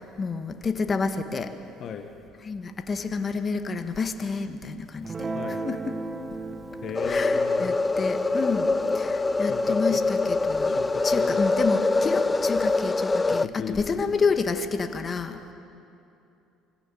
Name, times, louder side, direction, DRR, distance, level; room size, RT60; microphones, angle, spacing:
voice 1, 0.2-1.5 2.4-5.3 5.7-6.0 6.3-6.4 7.1-10.8 11.0-15.4, left 4 dB, 35° left, 8 dB, 1.5 m, -29 dB
Guitar, 5.0-11.6, right 3 dB, 30° right, 1.5 m, -38 dB
voice 2, 6.8-7.8 9.4-10.0 10.7-11.4 13.2-14.1, left 7 dB, 55° left, 6 dB, 1.2 m, -36 dB
sound 1, 6.9-13.5, left 3 dB, 20° left, 0.5 m, -24 dB
23.0 x 16.5 x 7.0 m, 2.7 s
supercardioid pair, 75°, 0 cm